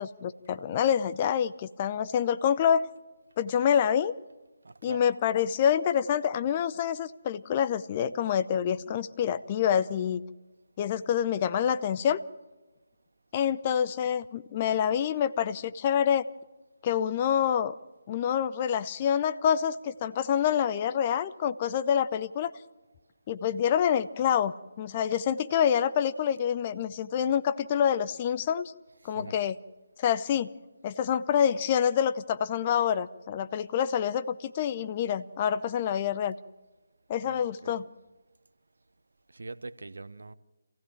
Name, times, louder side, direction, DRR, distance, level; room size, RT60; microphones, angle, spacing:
voice 1, 0.0-2.9 3.4-4.1 4.8-10.2 10.8-12.2 13.3-16.3 16.8-17.7 18.1-22.5 23.3-28.7 29.0-29.6 30.0-30.5 30.8-36.4 37.1-37.9, left 8 dB, 25° left, 0.7 m, -27 dB
voice 2, 4.6-5.1 29.0-29.4 37.2-37.8 39.3-40.3, right 3 dB, 65° right, 1.1 m, -43 dB
27.0 x 16.0 x 7.4 m
figure-of-eight pair, 145°, 0 cm